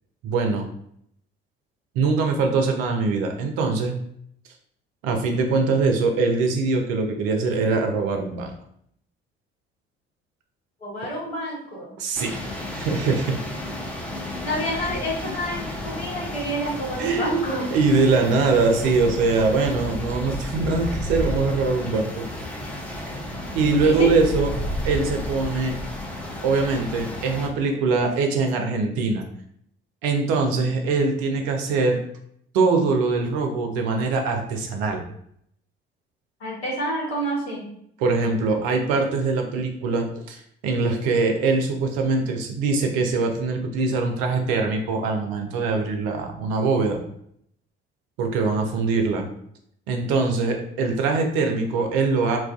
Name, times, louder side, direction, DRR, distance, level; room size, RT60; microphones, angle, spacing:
voice 1, 0.2-0.6 1.9-4.0 5.0-8.5 12.0-12.4 12.7-13.4 17.0-17.4 17.7-22.2 23.5-24.5 24.8-25.7 26.4-29.2 30.0-32.0 32.5-35.0 38.0-47.0 48.2-49.3 49.9-52.4, right 4 dB, 65° right, 3 dB, 0.5 m, -22 dB
voice 2, 10.8-12.0 14.4-17.6 23.8-24.1 36.4-37.7, equal, 85° left, -5 dB, 0.9 m, -28 dB
sound 1, 12.2-27.5, left 1 dB, 5° left, 0.5 m, -32 dB
2.3 x 2.2 x 2.4 m, 0.71 s
figure-of-eight pair, 45°, 31 cm